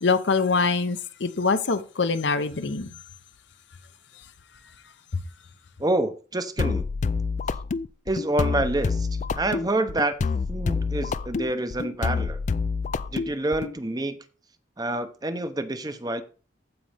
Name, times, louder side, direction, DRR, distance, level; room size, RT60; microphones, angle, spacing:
voice 1, 0.0-2.9, left 4 dB, 70° left, 0.8 m, -24 dB
voice 2, 5.8-6.9 8.1-9.1 9.3-10.2 10.5-12.4 13.1-14.2 14.8-16.2, right 1 dB, 20° right, 0.7 m, -27 dB
sound 1, 6.6-13.8, left 4 dB, 40° left, 0.3 m, -27 dB
15.0 x 5.2 x 3.4 m
head